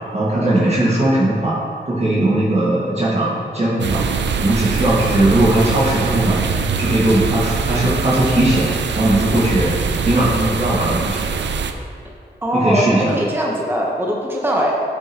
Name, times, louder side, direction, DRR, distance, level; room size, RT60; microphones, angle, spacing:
voice 1, 0.1-1.5 1.9-4.0 4.4-6.4 6.8-8.7 9.0-9.7 10.0-11.3 12.5-13.1, right 1 dB, 35° right, -7 dB, 1.8 m, -18 dB
sound 1, 3.8-11.7, right 5 dB, 80° right, 0.5 m, -22 dB
voice 2, 12.4-14.7, equal, 10° right, -2 dB, 1.0 m, -21 dB
9.6 x 6.5 x 3.0 m, 2.3 s
cardioid pair, 65°, 18 cm